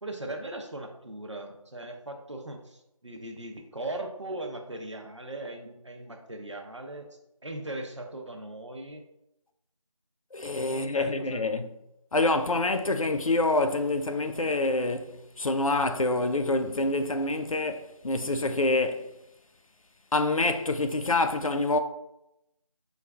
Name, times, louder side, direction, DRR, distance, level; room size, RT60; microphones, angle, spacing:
voice 1, 0.0-7.1 7.4-9.0 10.5-11.7, right 2 dB, 55° right, 0.6 m, -39 dB
voice 2, 10.3-11.7 12.1-19.1 20.1-21.8, left 2 dB, 65° left, 0.4 m, -26 dB
5.4 x 2.3 x 2.2 m
figure-of-eight pair, 175°, 19 cm